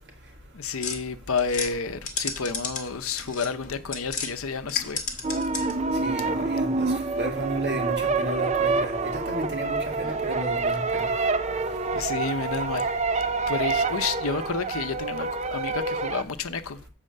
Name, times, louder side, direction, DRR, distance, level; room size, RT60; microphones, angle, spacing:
voice 1, 0.5-5.0 11.9-12.9 13.2-16.8, left 5 dB, 80° left, 0.7 m, -30 dB
sound 1, 0.8-4.3 4.6-5.9, left 4 dB, 35° left, 1.7 m, -34 dB
sound 2, 5.2-16.2, right 3 dB, 30° right, 0.5 m, -27 dB
voice 2, 6.0-11.1, right 1 dB, 50° right, 2.3 m, -33 dB
7.5 x 4.3 x 6.7 m
head